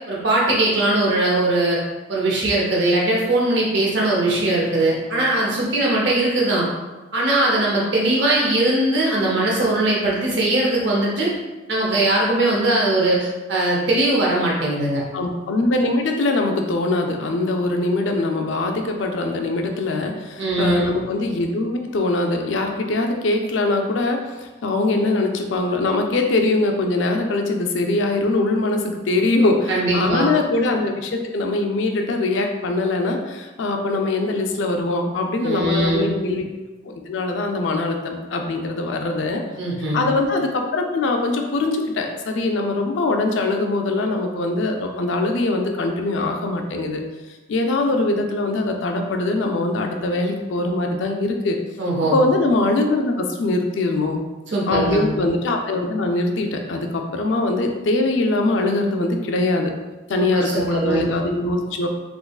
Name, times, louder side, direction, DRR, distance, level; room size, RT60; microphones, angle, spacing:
voice 1, 0.0-1.8 2.1-6.7 7.1-11.3 11.7-15.0 20.4-20.9 29.7-30.3 35.4-36.1 39.6-40.0 51.8-52.2 54.5-55.0 60.2-61.1, right 2 dB, 65° right, -3 dB, 0.8 m, -20 dB
voice 2, 15.1-36.5 36.8-39.4 39.9-47.0 47.5-51.6 52.1-54.2 54.7-59.7 60.1-61.9, left 2 dB, 75° left, 3 dB, 0.4 m, -22 dB
3.5 x 3.0 x 2.3 m, 1.2 s
head